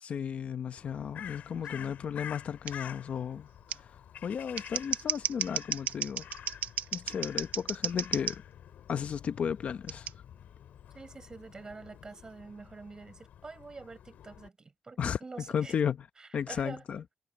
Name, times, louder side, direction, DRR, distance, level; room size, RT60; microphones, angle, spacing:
voice 1, 0.0-3.9 4.2-6.3 6.9-8.4 8.9-10.1 15.0-15.2 15.5-16.1 16.3-17.0, left 7 dB, 55° left, 0.9 m, -34 dB
Crow, 0.8-14.5, left 10 dB, 85° left, 4.9 m, -49 dB
voice 2, 1.7-2.0 10.9-15.8 16.2-16.8, right 4 dB, 25° right, 6.4 m, -47 dB
Scissors, 2.7-2.8 3.7-3.8 4.4-8.4 9.9-10.1, right 9 dB, 80° right, 0.8 m, -33 dB
wide cardioid pair, 135°, 3 cm